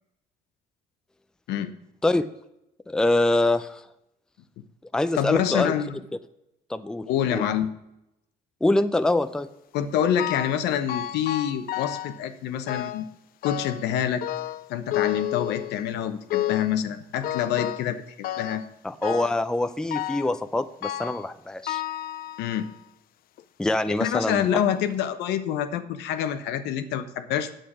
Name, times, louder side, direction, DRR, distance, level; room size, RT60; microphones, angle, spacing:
voice 1, 2.9-3.8 4.9-5.7 6.7-7.4 8.6-9.5 18.8-21.8 23.6-24.5, left 2 dB, 5° left, 11 dB, 0.4 m, -24 dB
voice 2, 5.1-6.0 7.1-7.7 9.7-13.0 13.4-14.3 14.7-18.6 22.4-22.7 24.0-27.5, left 9 dB, 85° left, 9 dB, 0.9 m, -26 dB
sound 1, 10.2-10.6 10.9-12.2 12.7-13.1 13.4-13.9 14.2-15.9 16.3-16.8 17.2-17.9 18.2-18.7 19.0-19.4 19.9-20.4 20.8-21.3 21.7-22.7 23.4-23.5 24.3-24.4 24.8-24.9, left 13 dB, 60° left, 0.5 m, -31 dB
9.0 x 7.8 x 4.8 m, 0.86 s
cardioid pair, 110°, 17 cm